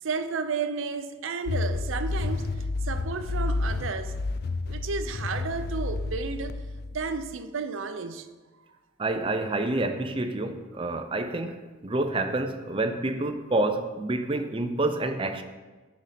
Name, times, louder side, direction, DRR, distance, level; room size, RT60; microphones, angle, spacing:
voice 1, 0.0-2.5 2.8-4.2 4.7-6.6 6.9-8.3, right 4 dB, 85° right, 0.6 m, -32 dB
sound 1, 1.5-7.3, left 3 dB, 50° left, 0.4 m, -30 dB
voice 2, 9.0-15.4, right 2 dB, 25° right, 0.5 m, -28 dB
10.0 x 4.2 x 5.0 m
head